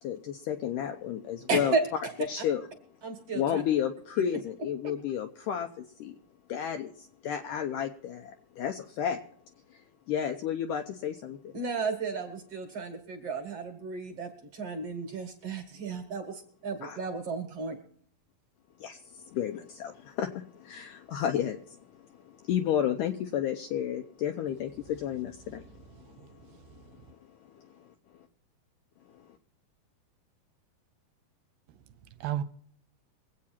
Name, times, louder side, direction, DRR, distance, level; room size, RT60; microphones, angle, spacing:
voice 1, 0.0-1.7 2.3-2.7 3.3-6.2 6.5-9.2 9.7-11.5 16.8-17.0 18.8-25.9 26.2-26.5 27.5-27.6 29.1-29.2, left 9 dB, 90° left, 1.9 m, -32 dB
voice 2, 1.5-2.1 3.0-3.6 11.5-17.8, right 4 dB, 55° right, 1.9 m, -33 dB
voice 3, 26.0-27.0 31.7-31.8 32.1-32.4, right 10 dB, 80° right, 2.5 m, -37 dB
23.5 x 8.5 x 4.3 m
omnidirectional pair, 4.6 m